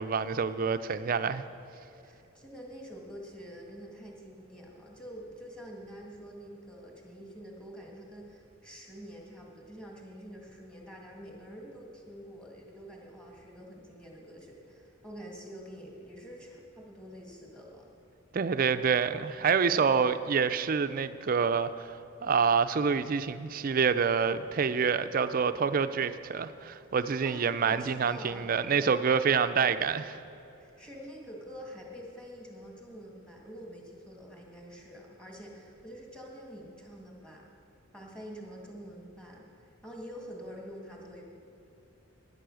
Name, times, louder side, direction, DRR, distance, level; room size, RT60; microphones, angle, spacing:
voice 1, 0.0-1.4 18.3-21.9 22.2-30.2, right 6 dB, 45° right, 11 dB, 0.4 m, -27 dB
voice 2, 2.0-17.9 27.2-29.0 30.6-37.5 37.9-41.2, equal, 5° left, -1 dB, 1.7 m, -47 dB
11.5 x 9.9 x 6.3 m, 2.7 s
head